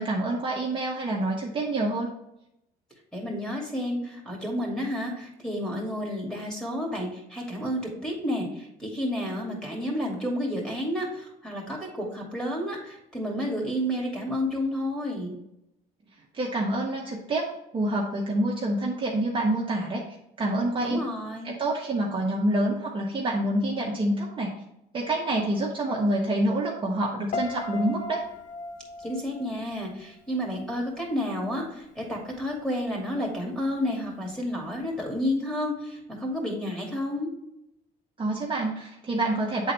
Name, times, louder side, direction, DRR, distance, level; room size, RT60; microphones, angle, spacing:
voice 1, 0.0-2.1 16.3-17.5 17.7-20.0 20.4-21.0 21.4-24.5 24.9-28.2 38.2-39.7, right 1 dB, 30° right, -3 dB, 1.2 m, -27 dB
voice 2, 3.1-15.4 20.8-21.6 29.0-37.3, left 1 dB, 5° left, -1 dB, 2.5 m, -31 dB
Piano, 27.3-30.4 30.7-31.1, left 3 dB, 45° left, 0.7 m, -36 dB
8.6 x 4.0 x 3.4 m, 0.82 s
cardioid pair, 110°, 17 cm